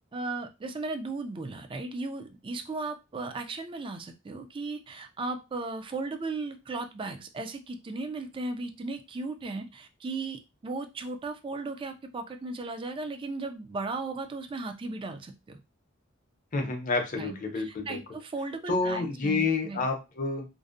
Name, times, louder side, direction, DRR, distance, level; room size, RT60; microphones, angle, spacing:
voice 1, 0.1-15.6 17.2-19.8, right 3 dB, 25° right, 0.3 m, -36 dB
voice 2, 16.5-18.0 18.7-20.4, left 3 dB, 40° left, 0.6 m, -29 dB
2.6 x 2.0 x 2.4 m
head